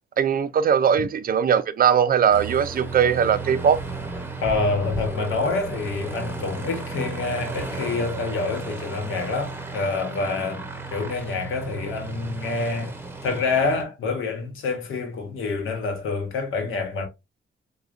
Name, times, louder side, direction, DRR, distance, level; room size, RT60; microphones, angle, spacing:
voice 1, 0.2-3.8, right 8 dB, 50° right, 0.4 m, -20 dB
Aircraft, 2.3-13.8, right 3 dB, 10° right, 0.7 m, -34 dB
voice 2, 4.4-13.0 13.2-17.1, left 3 dB, 85° left, 1.1 m, -27 dB
4.8 x 2.2 x 2.4 m
cardioid pair, 105°, 20 cm